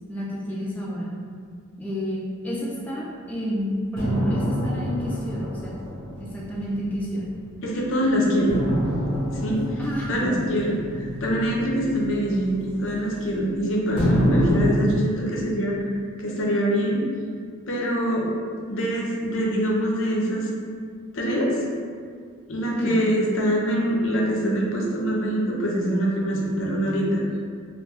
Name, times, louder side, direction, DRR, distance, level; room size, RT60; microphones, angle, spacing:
voice 1, 0.1-1.1 1.8-5.7 6.1-7.3 9.8-10.5 22.8-23.0, equal, 5° left, -6 dB, 0.4 m, -30 dB
sound 1, 4.0-7.6 8.5-13.5 14.0-14.7, equal, 25° left, 0.8 m, -27 dB
voice 2, 7.6-8.7 9.1-9.6 10.1-15.9 16.2-17.0 17.7-18.3 18.7-20.5 21.1-21.5 22.5-27.2, equal, 60° left, -2 dB, 0.5 m, -24 dB
2.4 x 2.2 x 3.4 m, 2.1 s
head